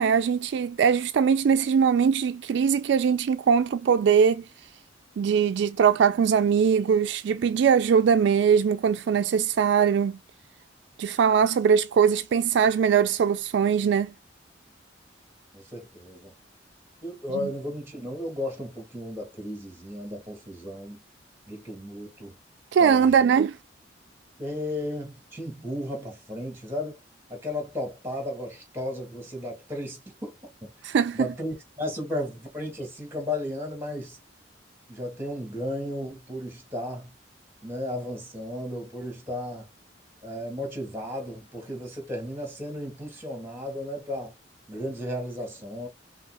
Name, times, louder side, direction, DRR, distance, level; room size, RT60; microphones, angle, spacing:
voice 1, 0.0-4.4 5.2-10.2 11.0-14.1 17.4-17.5 22.7-23.6 30.8-31.3, right 7 dB, 65° right, 0.3 m, -21 dB
voice 2, 15.5-16.3 17.0-21.0 21.5-22.4 22.8-23.3 24.4-27.0 27.3-30.7 31.1-34.2 34.9-37.1 37.6-39.7 40.2-44.3 44.7-45.9, left 1 dB, 15° right, 2.0 m, -34 dB
5.5 x 2.4 x 2.2 m
head